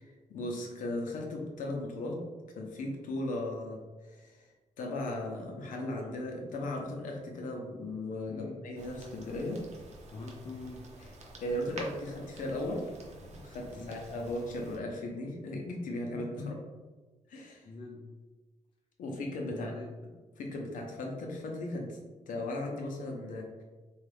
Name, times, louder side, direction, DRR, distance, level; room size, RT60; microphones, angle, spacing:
voice 1, 0.3-2.2 2.5-4.5 4.8-9.6 11.4-12.9 13.2-16.5 17.3-17.7 19.0-19.7 20.4-22.0 22.3-23.6, left 1 dB, 85° left, 0 dB, 0.7 m, -37 dB
voice 2, 8.3-8.7 10.1-10.9 13.8-14.1 16.4-16.6 17.6-18.0 19.5-19.9, left 3 dB, 40° left, -1 dB, 0.4 m, -43 dB
sound 1, 8.8-14.8, right 2 dB, 60° right, 0.7 m, -49 dB
3.5 x 2.4 x 3.3 m, 1.3 s
cardioid pair, 110°, 13 cm